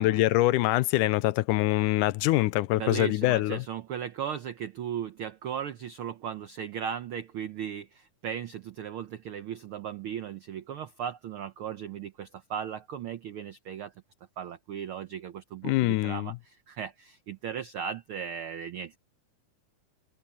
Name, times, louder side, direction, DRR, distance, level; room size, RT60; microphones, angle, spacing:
voice 1, 0.0-3.6 15.6-16.4, left 17 dB, 90° left, 2.2 m, -24 dB
voice 2, 2.8-13.9 14.4-19.0, right 8 dB, 90° right, 1.2 m, -37 dB
omnidirectional pair, 3.5 m